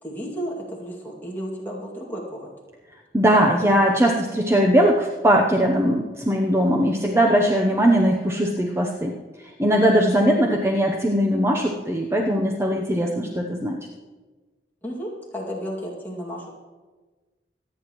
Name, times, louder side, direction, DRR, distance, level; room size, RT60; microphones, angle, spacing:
voice 1, 0.0-2.5 14.8-16.5, equal, 10° left, -4 dB, 2.2 m, -33 dB
voice 2, 3.1-9.1 9.6-13.8, equal, 15° right, 0 dB, 0.7 m, -20 dB
24.5 x 9.4 x 3.0 m, 1.3 s
head